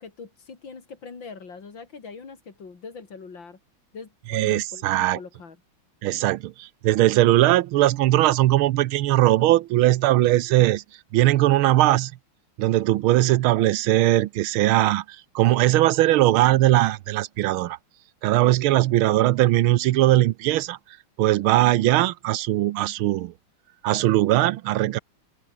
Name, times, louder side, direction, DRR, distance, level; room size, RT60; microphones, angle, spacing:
voice 1, 0.0-3.6 3.9-5.6, left 5 dB, 65° left, 3.8 m, -42 dB
voice 2, 4.3-5.2 6.0-10.8 11.1-12.1 12.6-17.8 18.2-20.8 21.2-23.3 23.8-25.0, right 15 dB, 90° right, 1.6 m, -20 dB
omnidirectional pair, 2.3 m